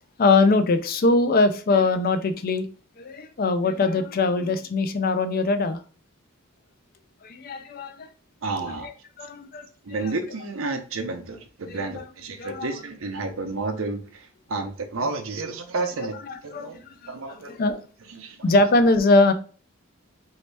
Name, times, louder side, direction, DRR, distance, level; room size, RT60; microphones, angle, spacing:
voice 1, 0.2-2.7 3.0-5.8 7.2-8.1 8.7-10.1 11.7-12.1 12.4-12.7 16.0-17.8 18.4-19.3, left 3 dB, 45° left, 0.4 m, -22 dB
voice 2, 8.4-8.9 9.8-16.2 16.4-17.6 18.1-18.4, right 3 dB, 85° right, 0.7 m, -31 dB
3.1 x 2.8 x 3.3 m
head